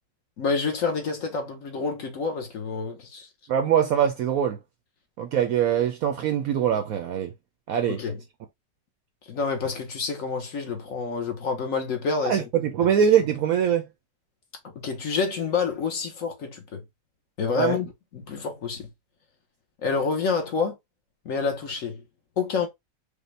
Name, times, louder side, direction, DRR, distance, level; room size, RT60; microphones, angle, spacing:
voice 1, 0.4-3.3 7.9-8.2 9.3-12.4 12.8-12.9 14.7-16.8 17.4-18.9 19.8-20.8 21.2-22.0 22.4-22.7, left 5 dB, 55° left, 1.1 m, -28 dB
voice 2, 3.5-4.6 5.2-7.3 7.7-8.0 12.3-13.9 17.5-17.8, right 8 dB, 70° right, 0.9 m, -23 dB
5.1 x 2.1 x 3.2 m
omnidirectional pair, 1.9 m